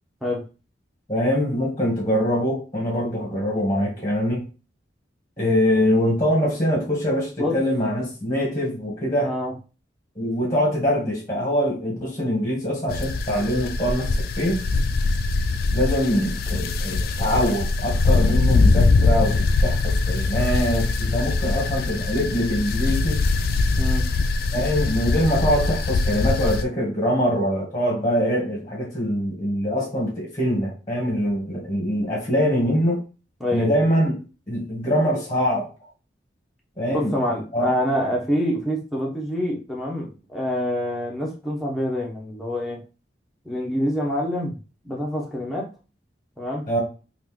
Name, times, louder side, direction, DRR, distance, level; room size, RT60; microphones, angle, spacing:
voice 1, 1.1-4.4 5.4-9.3 10.1-14.6 15.7-23.2 24.5-33.0 33.5-34.1 34.5-35.7 36.8-37.1 37.5-37.6 46.7-46.8, equal, 20° left, -2 dB, 1.2 m, -23 dB
voice 2, 9.2-9.5 23.8-24.0 33.4-33.7 36.9-42.8 43.4-44.5 44.8-45.7 46.4-46.6, equal, ahead, -2 dB, 0.8 m, -26 dB
sound 1, 12.9-26.6, left 3 dB, 55° left, 0.3 m, -22 dB
3.1 x 2.5 x 3.6 m, 0.33 s
head